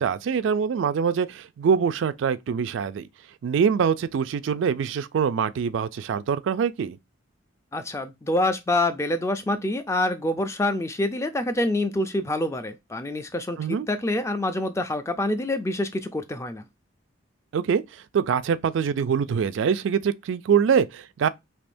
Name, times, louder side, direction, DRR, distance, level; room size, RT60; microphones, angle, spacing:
voice 1, 0.0-3.1 3.4-7.0 13.6-13.9 17.5-17.8 18.1-21.3, right 7 dB, 70° right, 0.3 m, -24 dB
voice 2, 7.7-16.6, left 1 dB, 15° left, 0.3 m, -26 dB
3.4 x 2.9 x 2.5 m
head